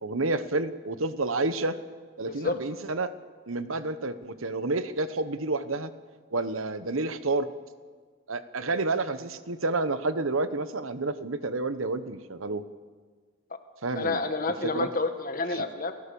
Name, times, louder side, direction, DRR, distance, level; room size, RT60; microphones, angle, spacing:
voice 1, 0.0-1.8 2.2-3.1 3.5-5.9 6.3-7.5 8.3-12.6 13.8-14.2 14.7-14.9 15.5-15.6, right 2 dB, 85° right, 12 dB, 1.2 m, -29 dB
voice 2, 2.3-2.6 13.9-15.9, left 3 dB, 45° left, 7 dB, 1.8 m, -29 dB
29.0 x 16.0 x 7.1 m, 1.5 s
head